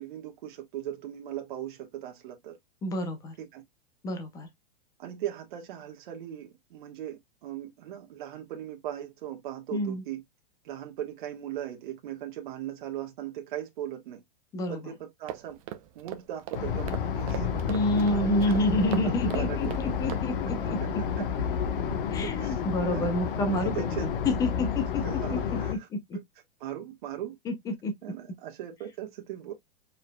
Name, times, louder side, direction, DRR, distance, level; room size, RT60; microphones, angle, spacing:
voice 1, 0.0-2.6 3.4-3.6 5.0-10.2 10.6-14.2 14.7-15.6 15.9-18.3 18.7-19.7 21.2-21.3 22.2-22.6 22.9-23.1 23.5-24.1 25.0-25.8 26.6-27.4 28.0-29.5, right 11 dB, 55° right, 1.4 m, -38 dB
voice 2, 2.8-3.4 4.0-4.5 9.7-10.0 14.5-14.9 17.7-21.3 22.1-25.1 25.3-26.2 27.4-28.2, left 1 dB, 10° left, 0.6 m, -29 dB
sound 1, 15.3-20.2, right 12 dB, 35° right, 0.6 m, -41 dB
sound 2, 16.5-25.7, left 7 dB, 60° left, 1.2 m, -30 dB
4.7 x 4.3 x 2.2 m
supercardioid pair, 165°, 30 cm